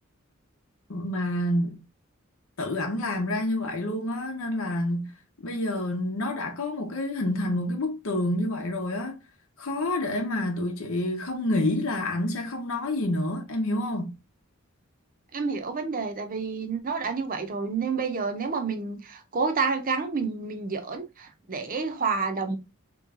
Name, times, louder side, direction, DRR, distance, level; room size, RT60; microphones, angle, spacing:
voice 1, 0.9-1.8 2.6-5.1 5.4-9.2 9.6-14.1, left 1 dB, 85° left, 0.9 m, -28 dB
voice 2, 15.3-22.6, right 4 dB, 45° right, 0.7 m, -29 dB
3.4 x 3.1 x 3.5 m
head